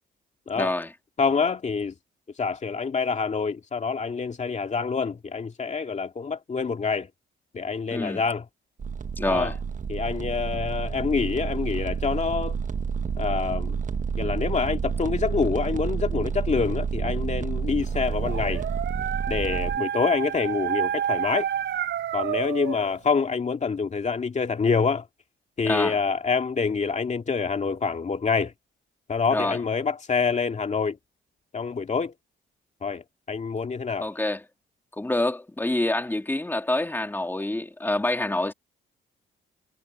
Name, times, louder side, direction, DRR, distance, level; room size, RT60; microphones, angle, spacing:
voice 1, 0.5-0.9 7.9-8.2 9.2-9.6 25.6-26.0 29.3-29.6 34.0-34.4 35.0-38.5, left 2 dB, 10° left, 2.4 m, -26 dB
voice 2, 1.2-1.9 2.4-7.1 7.5-8.4 9.2-9.5 9.9-12.6 13.2-13.8 14.2-18.6 19.3-21.5 22.1-25.1 25.6-28.5 29.1-31.0 31.5-32.1 32.8-34.1, left 5 dB, 35° left, 2.2 m, -26 dB
sound 1, 8.8-19.8, right 6 dB, 40° right, 1.3 m, -29 dB
Dog, 17.9-23.0, right 10 dB, 65° right, 3.3 m, -29 dB
cardioid pair, 90°, 20 cm